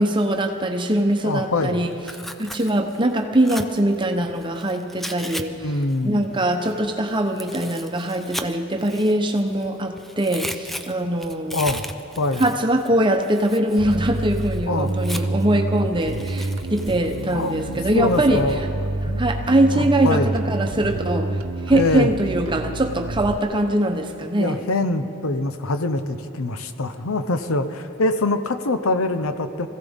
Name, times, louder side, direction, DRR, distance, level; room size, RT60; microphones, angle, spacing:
voice 1, 0.0-1.9 2.4-5.5 6.0-11.6 12.4-18.5 19.2-21.4 21.7-24.6, right 1 dB, 20° right, 4 dB, 0.9 m, -22 dB
voice 2, 1.2-1.8 5.6-6.2 11.5-11.8 12.2-12.5 14.7-14.9 17.3-18.6 19.1-19.2 19.7-20.3 21.7-22.1 24.4-29.7, left 2 dB, 80° left, 9 dB, 0.9 m, -24 dB
Tearing, 1.9-5.4 5.7-9.7 10.0-15.5 16.0-18.5, equal, ahead, 0.4 m, -37 dB
Bass guitar, 13.8-23.4, right 2 dB, 75° right, 0.7 m, -28 dB
24.5 x 15.5 x 3.6 m, 2.7 s
head